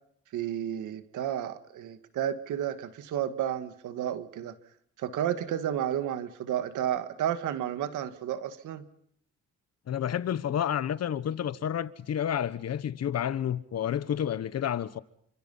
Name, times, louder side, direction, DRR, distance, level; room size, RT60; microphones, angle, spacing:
voice 1, 0.3-4.5 5.0-8.9, right 10 dB, 80° right, 2.1 m, -32 dB
voice 2, 9.9-15.0, left 9 dB, 55° left, 1.3 m, -30 dB
28.5 x 26.0 x 5.7 m
cardioid pair, 90°, 30 cm